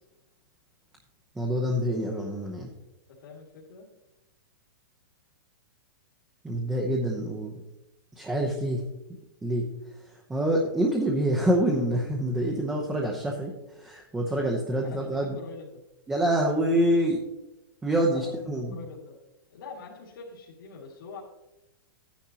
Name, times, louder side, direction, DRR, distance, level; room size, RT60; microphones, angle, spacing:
voice 1, 1.3-2.7 6.4-7.5 8.2-8.8 9.4-9.6 10.0-15.4 16.1-17.2 17.8-18.8, right 1 dB, 5° right, 0 dB, 0.9 m, -26 dB
voice 2, 3.1-3.9 12.9-13.0 14.8-15.8 18.1-19.2 19.5-21.2, left 4 dB, 65° left, -5 dB, 2.3 m, -44 dB
11.5 x 10.0 x 2.9 m, 0.96 s
hypercardioid pair, 165°, 12 cm